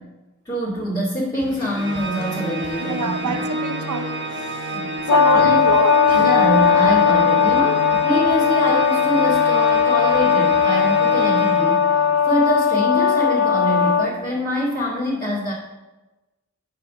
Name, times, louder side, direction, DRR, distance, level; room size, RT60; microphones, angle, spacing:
voice 1, 0.4-3.4 4.7-4.9 5.3-5.6 6.1-11.9 12.2-15.5, equal, 15° left, 2.2 m, -25 dB
sound 1, 1.3-11.5, left 1 dB, 80° left, 1.2 m, -41 dB
Organ, 1.7-12.4, right 1 dB, 40° right, 0.9 m, -29 dB
voice 2, 2.8-4.2 5.1-6.3, right 5 dB, 85° right, 0.6 m, -26 dB
Brass instrument, 5.1-14.1, left 7 dB, 60° left, 0.4 m, -17 dB
5.7 x 4.9 x 6.4 m
wide cardioid pair, 75°, 29 cm